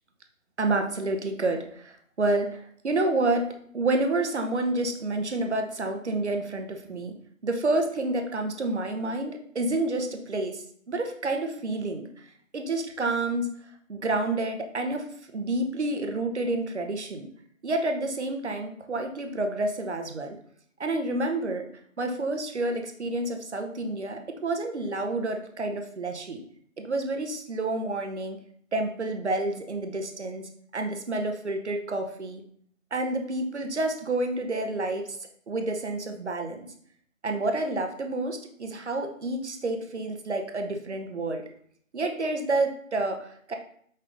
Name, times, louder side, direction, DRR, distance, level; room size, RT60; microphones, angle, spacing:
voice 1, 0.6-3.5 3.7-7.1 7.4-12.1 12.5-13.5 13.9-15.1 15.3-17.3 17.6-20.4 20.8-21.7 22.0-26.4 26.8-28.4 28.7-32.4 32.9-35.2 35.5-36.7 37.2-41.4 41.9-43.5, right 2 dB, 55° right, 4 dB, 0.7 m, -29 dB
5.3 x 3.6 x 2.5 m, 0.62 s
figure-of-eight pair, 165°, 41 cm